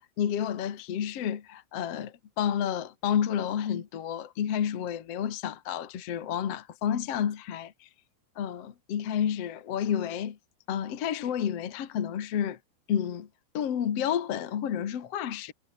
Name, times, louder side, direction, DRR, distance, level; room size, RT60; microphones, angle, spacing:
voice 1, 0.0-7.9 8.3-10.4 10.7-12.6 12.9-13.3 13.5-15.5, left 9 dB, 55° left, 1.7 m, -30 dB
omnidirectional pair, 5.5 m